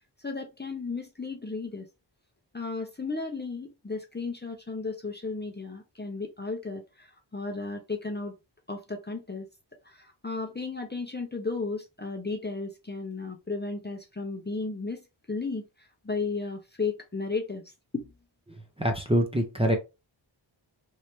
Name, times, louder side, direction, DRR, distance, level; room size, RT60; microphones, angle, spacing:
voice 1, 0.2-1.9 2.5-8.3 8.7-9.4 10.2-15.0 15.3-15.6 16.0-17.6 17.9-18.0, left 3 dB, 20° left, 0.7 m, -34 dB
voice 2, 18.8-19.8, equal, 10° right, 0.7 m, -24 dB
3.3 x 2.7 x 3.0 m
wide cardioid pair, 60°, 47 cm